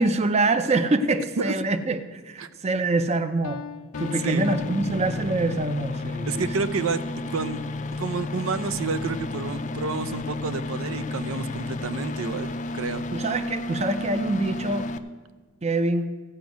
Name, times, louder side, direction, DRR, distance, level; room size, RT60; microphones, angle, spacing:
voice 1, 0.0-3.6 4.0-6.5 13.1-14.9 15.6-16.1, right 2 dB, 30° right, 10 dB, 0.5 m, -25 dB
Piano, 3.4-5.9, left 7 dB, 90° left, 0.5 m, -39 dB
sound 1, 3.9-15.0, left 2 dB, 35° left, 0.5 m, -32 dB
voice 2, 6.3-7.0 7.3-7.6 8.0-13.0, right 4 dB, 80° right, 13 dB, 0.6 m, -29 dB
15.0 x 5.1 x 9.2 m, 1.5 s
head